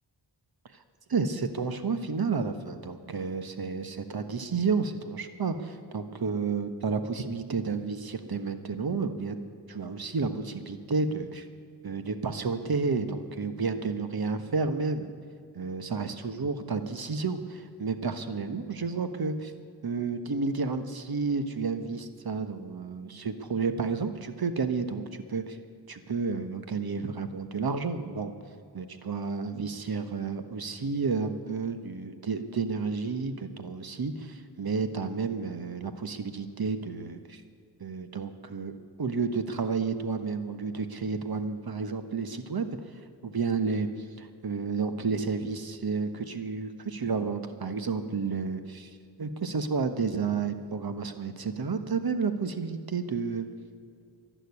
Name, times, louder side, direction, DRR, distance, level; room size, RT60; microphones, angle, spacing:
voice 1, 1.1-9.4 9.7-11.5 11.8-15.1 15.5-19.5 19.8-25.6 25.9-28.3 28.7-37.4 37.8-42.9 43.2-53.5, right 4 dB, 55° right, 9 dB, 1.3 m, -31 dB
11.5 x 11.5 x 9.8 m, 2.4 s
wide cardioid pair, 70°, 43 cm